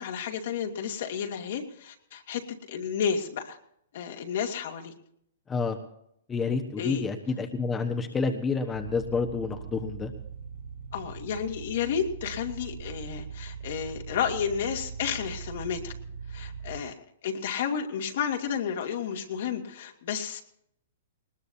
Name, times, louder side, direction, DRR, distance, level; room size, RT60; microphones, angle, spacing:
voice 1, 0.0-2.4 2.7-3.6 3.9-4.9 6.8-7.0 10.9-15.9 16.3-16.9 17.2-20.4, left 7 dB, 65° left, 3 dB, 2.4 m, -31 dB
voice 2, 5.5-5.8 6.3-10.1, left 4 dB, 15° left, 4 dB, 1.2 m, -29 dB
sound 1, 8.7-16.8, right 6 dB, 80° right, 4.1 m, -40 dB
20.0 x 19.5 x 2.8 m, 0.73 s
hypercardioid pair, 130°, 0 cm